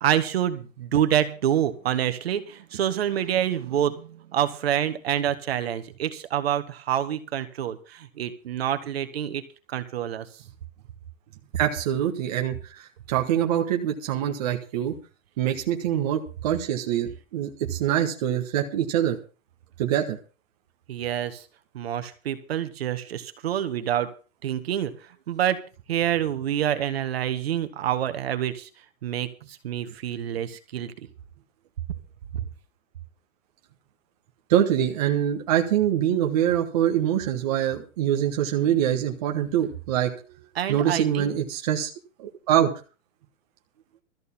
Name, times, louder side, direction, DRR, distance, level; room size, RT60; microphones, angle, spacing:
voice 1, 0.0-9.4 9.7-10.3 20.9-21.5 21.7-24.1 24.4-25.6 25.9-28.7 29.0-31.1 32.3-32.5 40.6-41.3, right 10 dB, 50° right, 9 dB, 1.7 m, -27 dB
voice 2, 11.6-15.0 15.4-19.2 19.8-20.2 34.5-40.1 40.7-41.9 42.2-42.7, right 10 dB, 30° right, 2 dB, 1.3 m, -24 dB
14.0 x 6.6 x 8.5 m, 0.35 s
hypercardioid pair, 175°, 38 cm